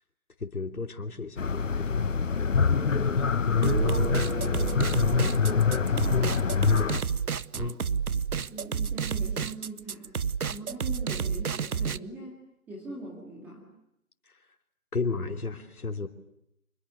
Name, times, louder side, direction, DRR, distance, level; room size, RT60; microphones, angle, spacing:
voice 1, 0.4-2.2 7.6-7.8 14.9-16.1, left 4 dB, 75° left, 3.2 m, -33 dB
sound 1, 1.4-7.0, left 5 dB, 60° left, 1.5 m, -25 dB
voice 2, 2.7-6.8 8.4-10.1 10.5-12.3 12.7-13.7, right 1 dB, 5° right, 2.2 m, -42 dB
Guitar, 3.6-7.1, right 5 dB, 45° right, 1.0 m, -38 dB
sound 2, 3.6-12.0, right 6 dB, 75° right, 0.9 m, -30 dB
27.0 x 22.0 x 8.1 m
figure-of-eight pair, 160°, 44 cm